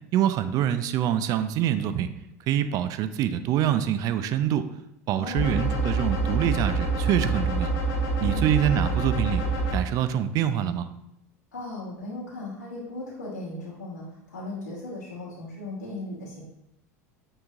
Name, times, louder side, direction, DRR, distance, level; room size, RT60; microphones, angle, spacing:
voice 1, 0.1-2.1 2.5-4.7 5.1-7.7 8.2-9.4 9.7-10.9, right 10 dB, 45° right, 11 dB, 0.4 m, -25 dB
voice 2, 5.1-5.5 8.2-8.5 11.5-16.4, left 2 dB, 90° left, -11 dB, 1.3 m, -37 dB
sound 1, 5.4-9.8, right 2 dB, 60° left, 1.2 m, -26 dB
6.1 x 3.0 x 2.4 m, 0.81 s
hypercardioid pair, 85°, 9 cm